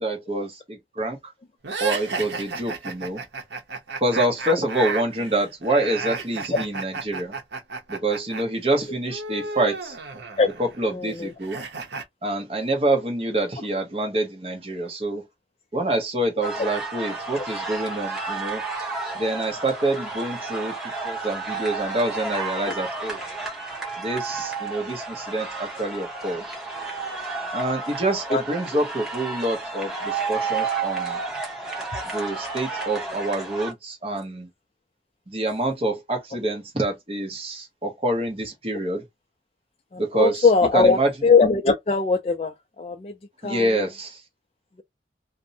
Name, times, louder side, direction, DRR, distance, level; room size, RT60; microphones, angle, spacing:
voice 1, 0.0-1.2 1.8-3.2 4.0-7.3 7.9-10.0 10.6-11.6 12.2-15.2 15.7-18.6 19.1-20.7 21.0-23.2 24.0-26.4 27.5-31.2 32.1-34.5 35.3-39.0 40.0-40.5 40.7-41.1 43.4-44.2, right 2 dB, 35° right, 0.8 m, -26 dB
sound 1, 1.6-8.4 8.7-12.0, right 4 dB, 80° right, 0.7 m, -33 dB
voice 2, 10.9-11.3 16.6-16.7 17.4-17.5 22.7-22.8 28.3-28.4 39.9-43.1 43.4-43.8, left 4 dB, 35° left, 0.3 m, -21 dB
sound 2, 16.4-33.7, right 4 dB, 5° right, 0.7 m, -31 dB
2.6 x 2.0 x 2.6 m
head